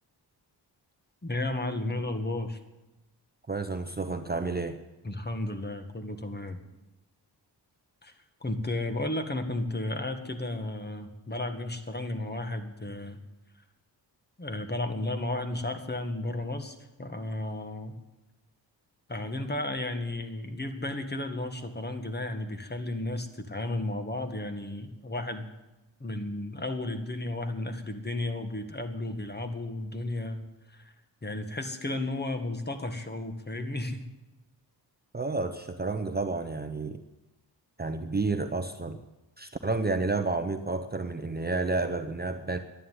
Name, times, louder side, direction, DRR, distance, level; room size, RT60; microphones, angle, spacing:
voice 1, 1.2-2.6 5.0-6.6 8.0-8.1 8.4-13.2 14.4-17.9 19.1-25.5 26.0-30.9 31.2-34.1, left 2 dB, 25° left, 7 dB, 1.6 m, -33 dB
voice 2, 3.5-4.8 35.1-37.0 37.8-39.0 39.4-42.6, right 3 dB, 20° right, 8 dB, 0.8 m, -30 dB
11.5 x 10.5 x 9.5 m, 1.0 s
wide cardioid pair, 95°, 43 cm